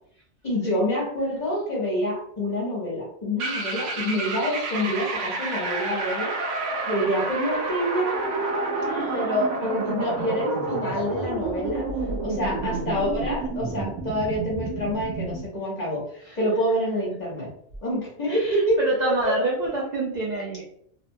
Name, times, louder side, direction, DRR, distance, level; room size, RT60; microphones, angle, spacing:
voice 1, 0.4-6.3 6.9-11.9 12.2-17.5 17.8-19.4, equal, 40° left, -5 dB, 0.9 m, -27 dB
sound 1, 3.4-15.5, right 3 dB, 85° right, 0.9 m, -29 dB
voice 2, 8.8-9.4 16.3-16.4 18.3-20.6, right 2 dB, 60° right, -3 dB, 0.4 m, -28 dB
2.7 x 2.1 x 2.6 m, 0.66 s
omnidirectional pair, 1.2 m